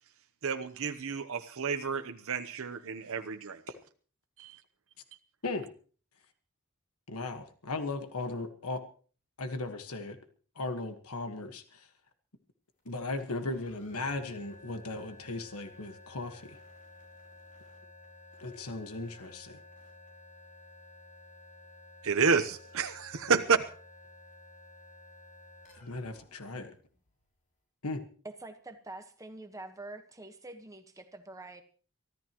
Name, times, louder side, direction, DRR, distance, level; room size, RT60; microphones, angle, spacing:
voice 1, 0.4-3.6 4.4-4.6 22.0-23.6, right 5 dB, 65° right, 7 dB, 0.9 m, -30 dB
voice 2, 7.1-8.8 9.4-10.2 10.5-11.9 12.8-16.6 18.4-19.6 25.7-26.7 27.8-28.0, left 2 dB, 75° left, 7 dB, 1.5 m, -37 dB
sound 1, 12.8-27.4, left 2 dB, 40° left, 5.5 m, -54 dB
voice 3, 28.4-31.6, right 2 dB, 15° right, 6 dB, 1.3 m, -46 dB
24.0 x 14.5 x 3.0 m, 0.42 s
head